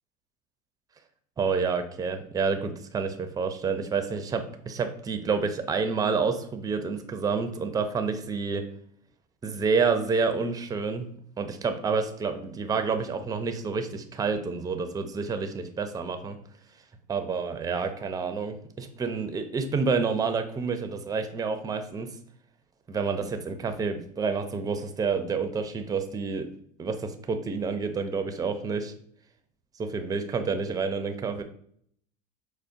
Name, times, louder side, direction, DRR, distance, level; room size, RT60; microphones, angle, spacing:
voice 1, 1.4-8.6 9.4-11.1 11.4-16.4 17.1-22.1 22.9-26.5 26.8-28.9 29.9-31.4, right 5 dB, 20° right, 8 dB, 0.4 m, -29 dB
4.9 x 2.1 x 2.5 m, 0.64 s
hypercardioid pair, 85°, 21 cm